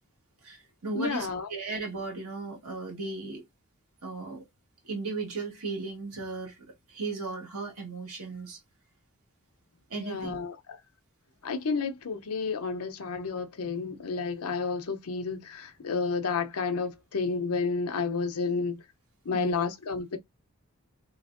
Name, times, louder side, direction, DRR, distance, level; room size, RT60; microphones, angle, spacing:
voice 1, 0.4-3.4 4.0-4.4 4.8-8.6 9.9-10.3 19.3-19.5, right 3 dB, 90° right, 1.6 m, -36 dB
voice 2, 0.9-1.5 10.0-10.8 11.4-18.8 19.3-20.2, left 4 dB, 85° left, 0.6 m, -31 dB
3.4 x 3.0 x 2.5 m
head